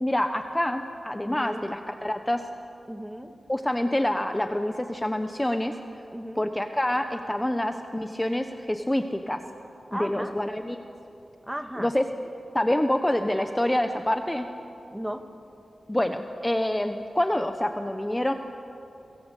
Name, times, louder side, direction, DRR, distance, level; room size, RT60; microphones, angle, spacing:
voice 1, 0.0-2.4 3.5-5.7 6.4-9.4 9.9-10.8 11.8-12.0 12.5-14.5 15.9-18.3, left 1 dB, 10° left, 6 dB, 1.1 m, -26 dB
voice 2, 1.2-1.7 2.9-3.3 6.1-6.4 9.9-10.4 11.5-11.9 14.9-15.3, equal, 5° right, 7 dB, 1.7 m, -35 dB
29.0 x 24.0 x 8.4 m, 2.8 s
wide cardioid pair, 120°, 0 cm